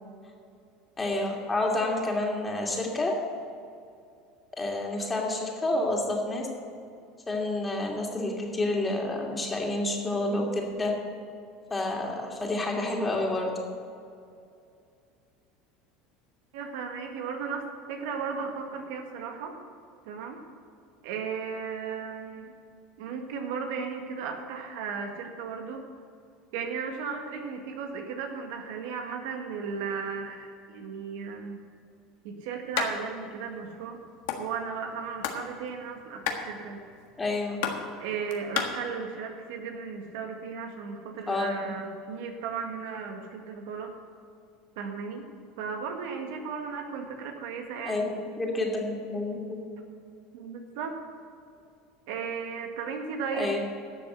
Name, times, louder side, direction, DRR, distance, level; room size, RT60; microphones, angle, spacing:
voice 1, 1.0-3.1 4.6-6.5 7.3-10.9 11.7-13.5 37.2-37.6 41.3-41.5 47.9-48.1 48.4-49.6 53.3-53.6, left 2 dB, 15° left, 0 dB, 2.7 m, -29 dB
voice 2, 16.5-19.6 20.1-20.4 21.0-22.5 23.0-25.9 26.5-31.6 32.2-34.0 34.4-36.8 38.0-43.9 44.8-45.3 45.6-48.1 50.3-51.0 52.1-53.6, right 6 dB, 75° right, 3 dB, 1.6 m, -35 dB
sound 1, 32.7-32.9 33.2-33.3 33.6-34.4 34.9-35.5 35.7-38.7, left 9 dB, 75° left, 1.5 m, -31 dB
12.0 x 6.8 x 7.8 m, 2.4 s
supercardioid pair, 105°, 0 cm